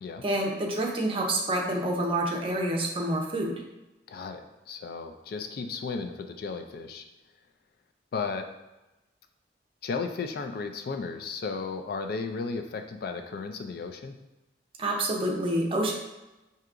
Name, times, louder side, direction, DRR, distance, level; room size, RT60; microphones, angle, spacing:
voice 1, 0.2-3.6 14.8-15.9, right 1 dB, 30° right, 0 dB, 0.5 m, -28 dB
voice 2, 4.1-7.0 8.1-8.5 9.8-14.2, left 4 dB, 55° left, 6 dB, 0.3 m, -34 dB
4.7 x 2.8 x 2.4 m, 1.0 s
head